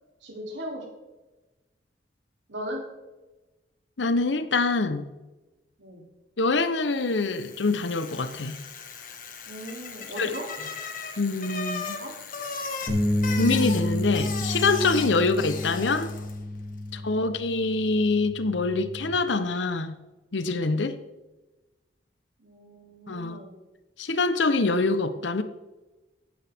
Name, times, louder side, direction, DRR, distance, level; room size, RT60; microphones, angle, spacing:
voice 1, 0.2-0.9 2.5-2.9 5.8-6.0 9.4-10.5 12.0-12.2 16.8-17.1 22.4-23.6, equal, 80° right, 0 dB, 3.1 m, -38 dB
voice 2, 4.0-5.1 6.4-8.6 10.2-10.3 11.2-12.0 13.4-16.1 16.9-20.0 20.3-21.0 23.1-23.4 24.0-25.4, left 3 dB, 90° left, 11 dB, 0.9 m, -25 dB
Bicycle, 7.0-16.4, left 5 dB, 50° left, 1.5 m, -37 dB
sound 1, 12.9-19.1, left 1 dB, 35° left, 2.8 m, -30 dB
15.5 x 8.7 x 3.6 m, 1.1 s
head